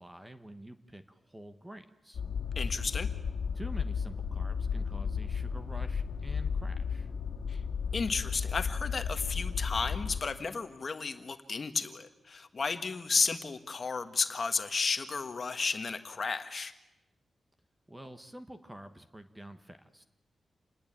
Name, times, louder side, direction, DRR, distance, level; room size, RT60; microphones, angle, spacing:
voice 1, 0.0-2.2 3.5-7.1 17.9-20.1, right 1 dB, 10° right, 9 dB, 1.2 m, -48 dB
sound 1, 2.1-10.2, left 6 dB, 80° left, 1.9 m, -34 dB
voice 2, 2.5-3.1 7.5-7.6 7.9-16.7, left 4 dB, 40° left, 9 dB, 1.5 m, -33 dB
28.0 x 20.0 x 8.7 m, 0.98 s
wide cardioid pair, 160°, 0 cm